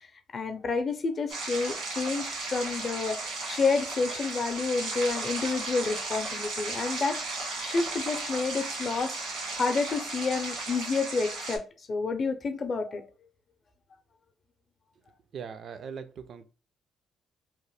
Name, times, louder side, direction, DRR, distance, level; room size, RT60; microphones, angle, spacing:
voice 1, 0.3-3.2 3.5-7.2 7.6-11.6 11.9-13.0, left 4 dB, 45° left, 8 dB, 0.5 m, -29 dB
sound 1, 1.3-11.6, right 3 dB, 80° right, 1.3 m, -35 dB
voice 2, 15.3-16.5, right 6 dB, 60° right, 10 dB, 0.4 m, -40 dB
2.9 x 2.1 x 3.2 m, 0.34 s
cardioid pair, 80°, 0 cm